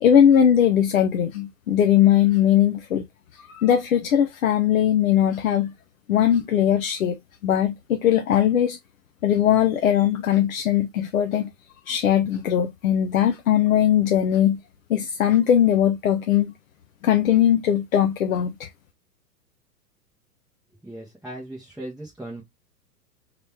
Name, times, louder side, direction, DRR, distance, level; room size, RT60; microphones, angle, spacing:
voice 1, 0.0-3.0 3.5-5.7 6.1-7.2 7.4-8.8 9.2-11.5 11.9-14.6 14.9-16.5 17.0-18.7, left 10 dB, 60° left, 0.7 m, -20 dB
voice 2, 20.8-22.4, right 1 dB, ahead, 0.7 m, -37 dB
3.8 x 3.1 x 3.0 m
figure-of-eight pair, 100°, 48 cm